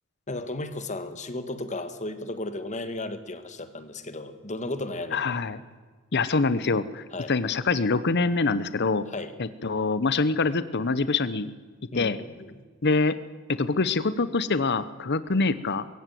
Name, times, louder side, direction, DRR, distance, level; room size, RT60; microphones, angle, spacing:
voice 1, 0.3-5.3 7.1-7.3 9.1-9.3 11.9-12.6, left 2 dB, 35° left, 10 dB, 1.8 m, -34 dB
voice 2, 5.1-5.6 6.1-9.1 9.4-11.5 12.0-12.2 12.8-13.2 13.5-15.8, left 3 dB, 55° left, 15 dB, 0.9 m, -25 dB
22.0 x 16.0 x 9.3 m, 1.5 s
head